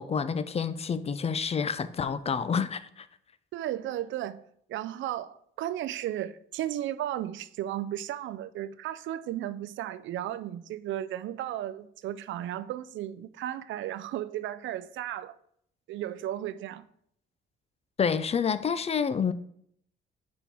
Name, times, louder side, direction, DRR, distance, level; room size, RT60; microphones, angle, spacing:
voice 1, 0.0-3.1 18.0-19.3, left 6 dB, 30° left, 0.4 m, -28 dB
voice 2, 3.5-4.4 4.7-15.4 15.9-16.8, right 12 dB, 75° right, 0.4 m, -34 dB
5.3 x 4.4 x 4.6 m
cardioid pair, 90°, 20 cm